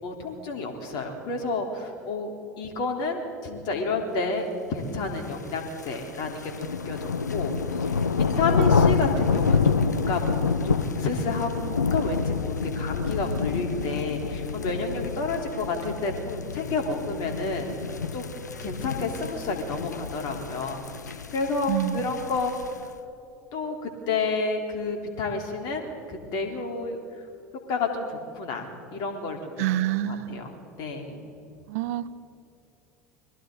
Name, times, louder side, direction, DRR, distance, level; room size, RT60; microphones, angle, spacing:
voice 1, 0.0-7.5 7.8-17.7 18.1-18.3 18.6-22.5 23.5-27.0 27.7-29.5 30.0-31.2, left 3 dB, 50° left, 3 dB, 3.7 m, -30 dB
sound 1, 5.3-22.9, left 5 dB, 85° left, 0.7 m, -28 dB
voice 2, 21.7-22.1 29.6-30.4 31.7-32.1, right 13 dB, 60° right, 14 dB, 0.8 m, -27 dB
30.0 x 22.5 x 4.0 m, 2.7 s
figure-of-eight pair, 70°, 9 cm